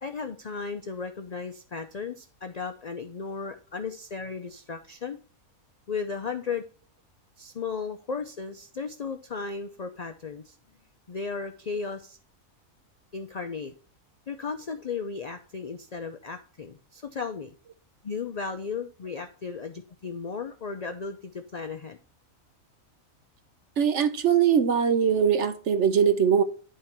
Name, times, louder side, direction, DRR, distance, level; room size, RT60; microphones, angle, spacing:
voice 1, 0.0-5.2 5.9-6.6 7.4-10.6 11.1-12.2 13.1-13.7 14.3-17.5 18.0-22.0, left 5 dB, 65° left, 0.4 m, -35 dB
voice 2, 23.8-26.4, right 7 dB, 60° right, 0.9 m, -21 dB
10.5 x 3.7 x 4.4 m
omnidirectional pair, 1.5 m